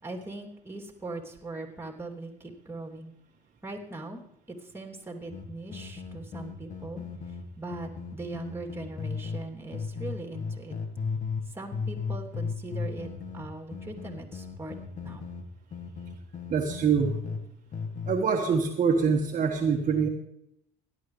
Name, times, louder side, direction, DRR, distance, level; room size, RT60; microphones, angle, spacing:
voice 1, 0.0-3.1 3.6-4.2 4.5-7.0 7.6-10.7 11.5-15.2, right 2 dB, 10° right, 2 dB, 3.0 m, -40 dB
sound 1, 5.3-9.4 9.7-11.5 11.7-17.4 17.7-18.2, left 5 dB, 40° left, 1.6 m, -35 dB
voice 2, 16.5-17.2 18.1-20.1, right 6 dB, 40° right, 1 dB, 1.6 m, -25 dB
17.0 x 11.5 x 3.3 m, 0.77 s
supercardioid pair, 85°, 20 cm